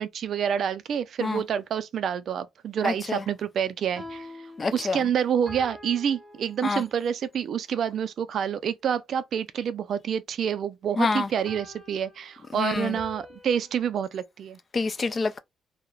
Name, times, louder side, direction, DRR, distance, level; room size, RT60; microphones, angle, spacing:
voice 1, 0.0-4.3 4.7-14.6, right 8 dB, 60° right, 0.3 m, -28 dB
voice 2, 2.8-3.2 4.6-5.0 6.6-6.8 11.0-11.3 12.6-12.9 14.7-15.4, left 4 dB, 35° left, 0.3 m, -26 dB
sound 1, 3.8-7.2 11.5-14.0, left 1 dB, ahead, 1.2 m, -46 dB
2.2 x 2.0 x 3.1 m
cardioid pair, 90°, 0 cm